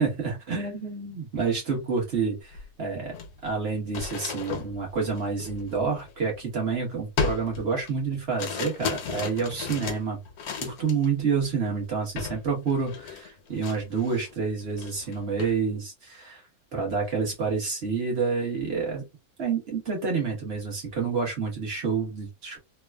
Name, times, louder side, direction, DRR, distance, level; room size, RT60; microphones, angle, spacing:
voice 1, 0.0-3.1 3.4-10.2 10.6-16.4 16.7-19.1 19.4-22.6, right 5 dB, 45° right, 0 dB, 1.3 m, -28 dB
sound 1, 2.5-2.6 3.0-6.6 7.2-11.1 11.4-11.7 12.2-12.4 12.7-14.3 14.7-15.6, left 5 dB, 75° left, 1.2 m, -35 dB
3.2 x 2.2 x 2.2 m, 0.23 s
omnidirectional pair, 1.7 m